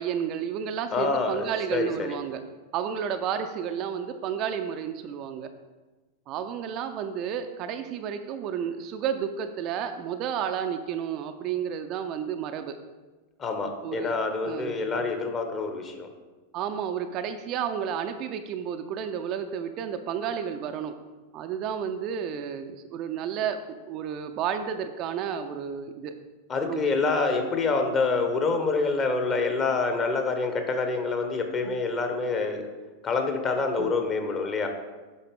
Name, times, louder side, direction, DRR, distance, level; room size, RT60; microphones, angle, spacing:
voice 1, 0.0-2.4 2.7-5.5 6.3-12.8 13.8-14.1 14.4-14.8 16.5-20.9 21.3-26.1 26.6-26.8 31.6-31.8 33.8-33.9, right 8 dB, 40° right, 7 dB, 0.5 m, -31 dB
voice 2, 0.9-2.2 13.4-16.1 26.5-32.6 33.0-34.7, left 4 dB, 25° left, 5 dB, 1.1 m, -27 dB
8.4 x 5.6 x 3.6 m, 1.2 s
figure-of-eight pair, 90°, 0 cm